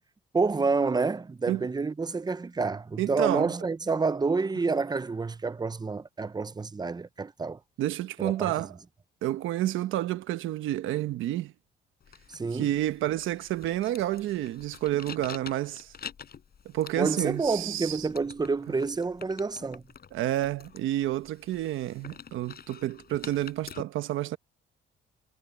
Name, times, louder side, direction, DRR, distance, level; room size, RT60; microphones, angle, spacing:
voice 1, 0.3-7.6 8.2-8.7 12.3-12.7 17.0-19.8, right 4 dB, 20° right, 0.8 m, -28 dB
voice 2, 3.0-3.5 7.8-8.7 9.2-11.5 12.5-15.9 16.7-18.1 20.1-24.4, right 14 dB, 85° right, 1.1 m, -29 dB
sound 1, 12.0-23.8, left 7 dB, 50° left, 5.0 m, -47 dB
cardioid pair, 90°, 20 cm